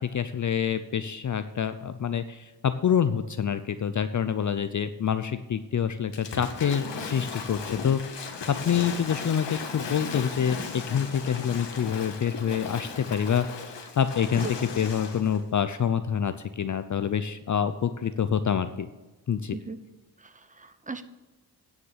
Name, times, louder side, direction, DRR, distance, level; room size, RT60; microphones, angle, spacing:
voice 1, 0.0-8.0 8.5-18.9 19.3-19.6, left 8 dB, 45° left, 11 dB, 0.5 m, -27 dB
Waves surf / Splash splatter, 6.1-15.4, left 5 dB, 80° left, 1.6 m, -37 dB
voice 2, 20.2-21.0, right 3 dB, 20° right, 11 dB, 0.8 m, -37 dB
9.6 x 6.6 x 7.3 m, 1.2 s
cardioid pair, 90°, 42 cm